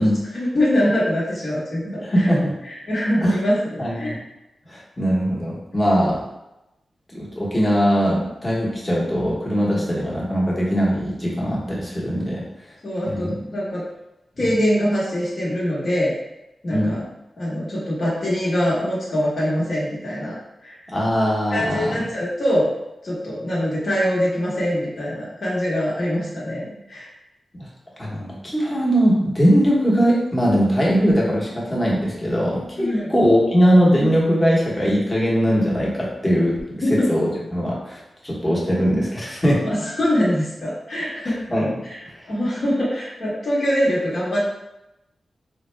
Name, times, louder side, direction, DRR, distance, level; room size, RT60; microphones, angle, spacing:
voice 1, 0.0-2.3 2.6-4.2 5.9-6.1 9.7-9.8 12.8-13.9 14.4-16.1 16.6-17.0 17.4-20.9 21.5-22.7 23.0-27.1 32.8-33.1 36.8-37.1 39.6-41.6 41.8-42.0 42.2-44.4, equal, 45° left, -7 dB, 1.1 m, -23 dB
voice 2, 2.0-2.5 3.2-3.4 3.8-4.2 4.7-6.2 7.1-12.4 13.0-13.4 14.4-14.5 16.7-17.0 20.9-22.0 27.5-27.7 28.0-39.6 41.2-41.7, equal, 15° left, -5 dB, 1.1 m, -20 dB
3.9 x 2.1 x 3.2 m, 0.92 s
wide cardioid pair, 100°, 0 cm